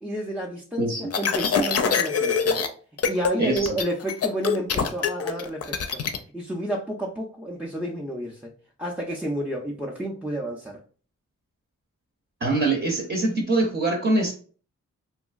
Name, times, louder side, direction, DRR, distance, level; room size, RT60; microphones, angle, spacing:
voice 1, 0.0-2.7 3.1-6.0 6.3-8.5 8.8-10.8, right 1 dB, 5° right, -2 dB, 0.4 m, -30 dB
sound 1, 1.1-2.7 3.0-3.3 3.6-6.2, left 6 dB, 50° left, 0.4 m, -24 dB
voice 2, 3.4-3.7 12.4-14.4, right 2 dB, 40° right, 0 dB, 0.7 m, -23 dB
2.9 x 2.5 x 2.3 m, 0.41 s
cardioid pair, 60°, 31 cm